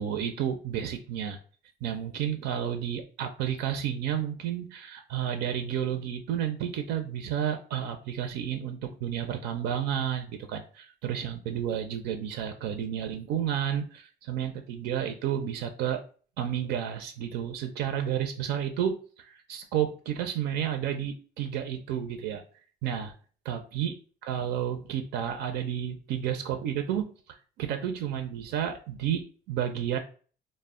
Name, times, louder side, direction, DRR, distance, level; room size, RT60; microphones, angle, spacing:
voice 1, 0.0-1.4 1.8-16.0 16.4-22.4 22.8-23.1 23.4-24.0 24.2-30.0, right 9 dB, 80° right, 7 dB, 0.4 m, -31 dB
2.1 x 2.0 x 3.5 m, 0.40 s
cardioid pair, 110°, 17 cm